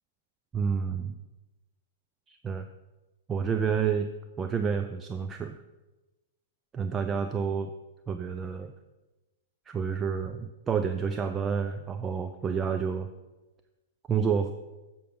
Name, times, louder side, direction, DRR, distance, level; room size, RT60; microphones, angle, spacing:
voice 1, 0.5-1.2 2.3-2.7 3.3-4.1 4.4-5.6 6.7-7.7 8.1-8.7 9.7-13.1 14.1-14.5, right 6 dB, 20° right, 8 dB, 0.5 m, -29 dB
8.3 x 7.1 x 5.7 m, 1.1 s
figure-of-eight pair, 105°, 0 cm